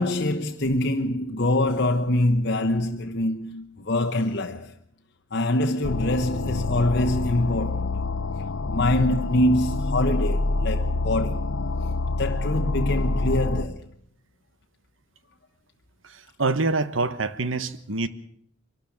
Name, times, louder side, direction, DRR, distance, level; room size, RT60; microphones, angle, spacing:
voice 1, 0.0-4.7 5.3-8.0 8.7-11.5 12.1-13.9, left 1 dB, 55° left, 1.1 m, -24 dB
sound 1, 5.8-13.6, left 2 dB, 75° left, 0.7 m, -27 dB
voice 2, 16.4-18.1, right 3 dB, 75° right, 1.2 m, -25 dB
23.5 x 12.5 x 8.7 m
head